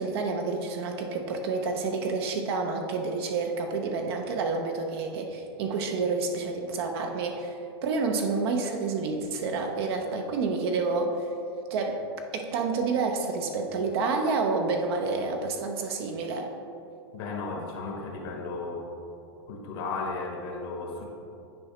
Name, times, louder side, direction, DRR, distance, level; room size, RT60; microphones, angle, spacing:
voice 1, 0.0-11.3 11.7-12.0 12.3-16.5, right 4 dB, 65° right, 3 dB, 0.8 m, -29 dB
voice 2, 17.1-18.9 19.5-21.1, left 3 dB, 60° left, 1 dB, 1.4 m, -34 dB
9.5 x 4.7 x 3.1 m, 2.6 s
hypercardioid pair, 125°, 14 cm